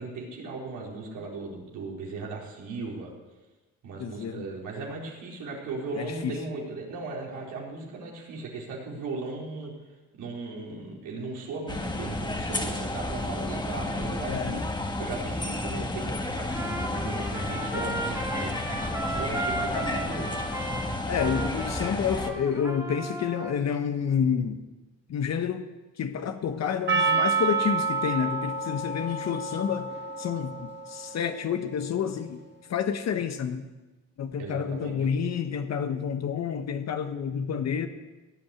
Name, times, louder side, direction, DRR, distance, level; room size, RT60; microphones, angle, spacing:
voice 1, 0.0-3.1 3.8-9.7 10.2-14.6 15.0-20.4 34.4-35.0, right 3 dB, 85° right, -2 dB, 4.0 m, -37 dB
voice 2, 4.0-4.5 6.0-6.4 14.3-14.6 17.7-18.0 19.7-19.9 21.1-24.6 25.1-25.7 26.0-29.9 30.2-33.7 34.2-37.9, left 7 dB, 60° left, 8 dB, 1.1 m, -29 dB
sound 1, 11.7-22.3, left 2 dB, 15° left, 1.7 m, -32 dB
Trumpet, 16.5-23.6, right 2 dB, 10° right, 2.3 m, -35 dB
Percussion, 26.9-31.4, right 4 dB, 35° right, 1.8 m, -29 dB
16.5 x 8.8 x 8.2 m, 1.1 s
cardioid pair, 90°, 30 cm